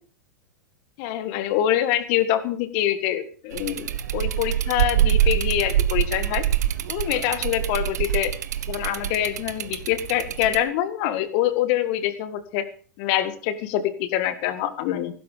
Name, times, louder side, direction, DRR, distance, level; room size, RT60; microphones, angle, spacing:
voice 1, 1.0-6.4 6.9-8.3 8.7-12.7 13.0-15.1, left 12 dB, 50° left, 12 dB, 1.9 m, -25 dB
sound 1, 3.5-10.6, right 10 dB, 65° right, 1.2 m, -25 dB
15.0 x 12.5 x 5.1 m, 0.42 s
hypercardioid pair, 100°, 10 cm